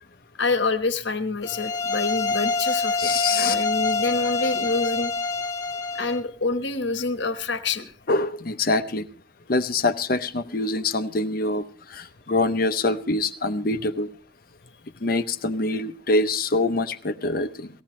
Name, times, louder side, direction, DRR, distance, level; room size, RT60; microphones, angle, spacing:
voice 1, 0.4-3.1 3.4-5.1 6.0-7.9, left 3 dB, 65° left, 10 dB, 1.2 m, -26 dB
sound 1, 1.4-6.2, left 3 dB, 15° left, 1.2 m, -26 dB
voice 2, 3.0-3.6 8.1-9.0 9.5-14.1 15.0-17.7, left 2 dB, 50° left, 11 dB, 0.7 m, -25 dB
18.5 x 15.0 x 3.1 m, 0.39 s
head